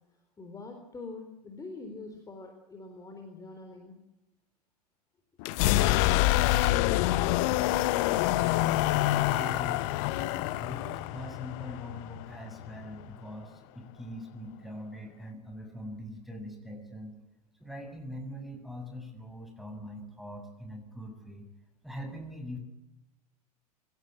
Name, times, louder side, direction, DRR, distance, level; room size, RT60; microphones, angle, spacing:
voice 1, 0.4-4.0, left 3 dB, 15° left, 5 dB, 3.9 m, -44 dB
sound 1, 5.4-13.1, left 16 dB, 50° left, 1.1 m, -27 dB
voice 2, 9.0-17.2 17.6-21.5 21.8-22.6, left 1 dB, ahead, 5 dB, 7.1 m, -42 dB
25.0 x 17.0 x 8.8 m, 0.95 s
figure-of-eight pair, 90°, 21 cm